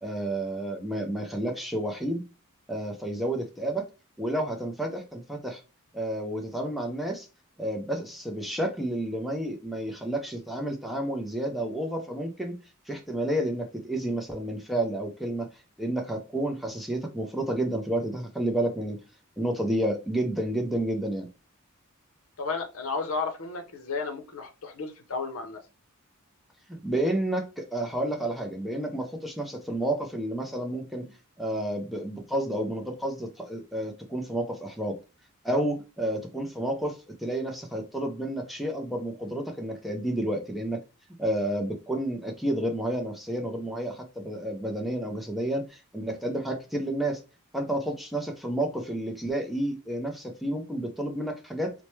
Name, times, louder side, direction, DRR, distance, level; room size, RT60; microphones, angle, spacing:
voice 1, 0.0-2.2 2.7-3.9 4.2-5.6 5.9-7.3 7.6-12.6 12.9-15.5 15.8-19.0 19.4-21.3 26.8-31.0 31.4-35.0 35.4-40.8 41.2-47.2 47.5-51.7, right 1 dB, ahead, 2 dB, 0.5 m, -30 dB
voice 2, 22.4-25.6, left 4 dB, 70° left, 6 dB, 0.7 m, -33 dB
4.4 x 2.1 x 3.0 m, 0.30 s
head